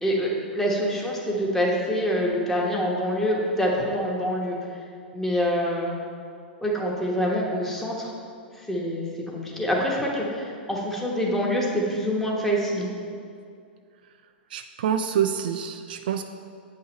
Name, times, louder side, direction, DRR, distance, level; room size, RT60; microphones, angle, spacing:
voice 1, 0.0-4.6 5.1-6.0 6.6-8.1 8.6-9.1 9.3-12.9, equal, 5° left, -3 dB, 1.2 m, -25 dB
voice 2, 14.5-16.2, right 8 dB, 60° right, 7 dB, 0.3 m, -26 dB
8.4 x 5.6 x 3.1 m, 2.3 s
figure-of-eight pair, 105°, 6 cm